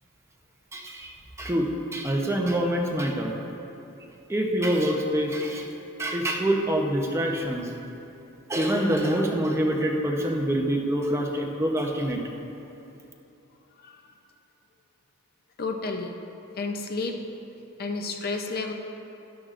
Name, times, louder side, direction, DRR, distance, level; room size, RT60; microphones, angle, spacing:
voice 1, 0.7-3.3 4.3-5.7 6.0-7.7 8.5-12.2, equal, 15° right, 0 dB, 0.8 m, -26 dB
voice 2, 15.6-16.2 16.6-17.2 17.8-18.7, left 3 dB, 45° left, 4 dB, 0.6 m, -31 dB
13.0 x 10.5 x 2.5 m, 2.9 s
head